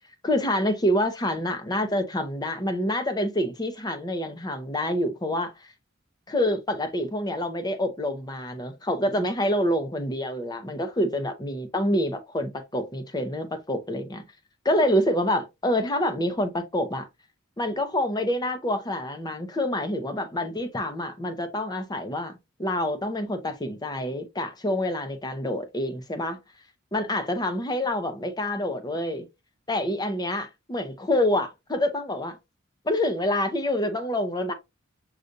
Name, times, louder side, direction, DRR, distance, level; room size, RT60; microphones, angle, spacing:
voice 1, 0.2-5.5 6.3-14.2 14.6-17.1 17.6-22.3 22.6-26.4 26.9-29.3 29.7-32.4 32.8-34.5, left 1 dB, 20° left, 0.7 m, -27 dB
6.5 x 2.4 x 2.6 m
head